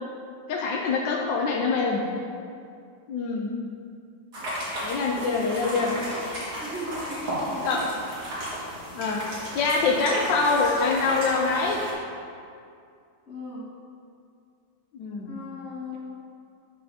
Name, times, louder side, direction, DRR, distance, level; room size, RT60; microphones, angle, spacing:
voice 1, 0.5-2.0 3.1-3.5 4.8-6.0 7.6-7.9 8.9-9.2 9.5-11.8 14.9-15.4, left 4 dB, 80° left, -1 dB, 1.4 m, -25 dB
sound 1, 4.3-11.9, equal, 60° right, 2.5 m, -33 dB
voice 2, 6.6-7.8 13.3-13.7 15.3-16.0, left 1 dB, 50° left, -10 dB, 2.2 m, -37 dB
12.5 x 5.4 x 2.8 m, 2.4 s
omnidirectional pair, 2.0 m